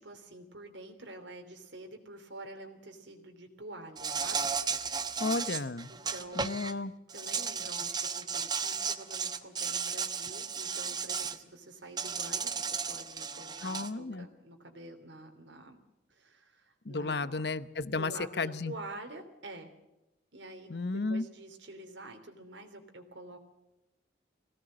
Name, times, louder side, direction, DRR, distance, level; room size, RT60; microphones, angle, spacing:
voice 1, 0.0-4.5 5.9-6.5 7.1-15.8 16.1-17.5 17.9-19.7 20.3-23.4, right 2 dB, 80° right, 4 dB, 3.2 m, -47 dB
Insect, 4.0-6.7 7.1-11.4 12.0-13.9, right 5 dB, 25° right, 0.9 m, -34 dB
voice 2, 5.2-5.9 6.4-6.9 13.6-14.3 16.8-18.1 18.4-18.7 20.7-21.3, left 3 dB, 60° left, 15 dB, 0.9 m, -33 dB
21.5 x 17.0 x 7.6 m, 0.96 s
head